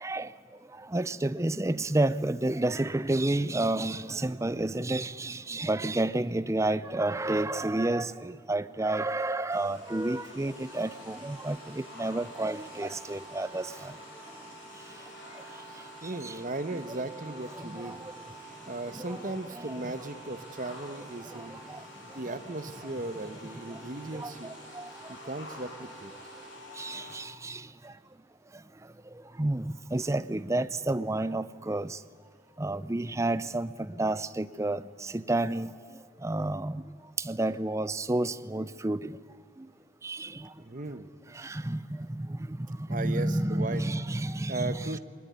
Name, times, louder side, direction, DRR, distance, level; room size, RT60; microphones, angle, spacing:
voice 1, 0.9-13.6 16.2-16.3 17.8-18.0 19.0-19.2 19.7-19.8 24.2-24.3 24.8-24.9 26.8-27.6 29.4-29.6 29.9-31.9 32.6-33.7 34.0-35.7 36.2-36.8 37.2-39.1 40.0-40.3 41.4-41.8 42.1-42.3 42.9-45.0, right 2 dB, 15° right, 15 dB, 0.5 m, -30 dB
sound 1, 9.5-27.2, equal, 70° left, 6.1 m, -47 dB
voice 2, 15.7-18.0 18.4-21.6 22.0-24.5 25.1-26.1 40.6-41.1 42.9-43.8 44.5-45.0, right 2 dB, 40° right, 11 dB, 1.1 m, -37 dB
21.5 x 19.5 x 9.6 m, 2.3 s
head